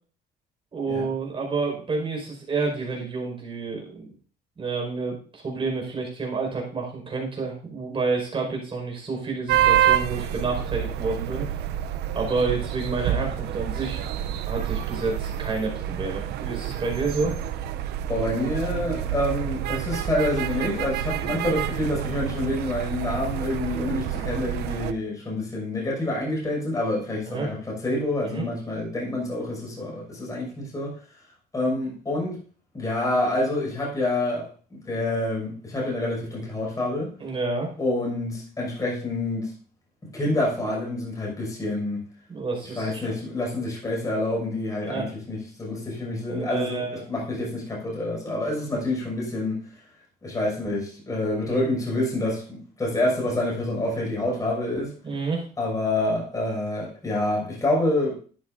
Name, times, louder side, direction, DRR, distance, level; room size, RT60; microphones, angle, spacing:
voice 1, 0.7-4.1 4.6-11.5 12.1-14.0 14.5-17.3 27.3-27.5 28.2-28.4 37.2-37.7 42.3-43.1 44.8-45.1 46.3-47.0 55.0-55.5, right 4 dB, 30° right, 5.3 m, -29 dB
sound 1, 9.5-24.9, right 10 dB, 80° right, 0.7 m, -28 dB
voice 2, 18.1-30.9 31.5-32.4 32.7-37.1 37.8-39.5 40.1-42.1 42.8-49.6 50.2-54.9 55.6-58.2, left 1 dB, 20° left, 5.8 m, -27 dB
13.0 x 10.0 x 2.7 m
cardioid pair, 110°, 17 cm